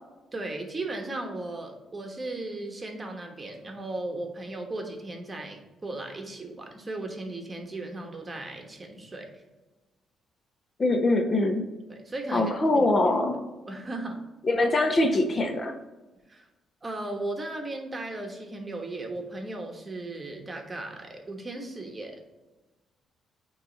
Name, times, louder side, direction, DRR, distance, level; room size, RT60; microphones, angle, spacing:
voice 1, 0.3-9.3 11.9-12.9 13.7-14.2 16.3-16.5 16.8-22.2, right 2 dB, 25° right, 3 dB, 1.2 m, -36 dB
voice 2, 10.8-11.7 12.3-13.4 14.4-15.7, left 2 dB, 35° left, 5 dB, 0.7 m, -23 dB
9.0 x 3.1 x 4.0 m, 1.1 s
cardioid pair, 90°, 0 cm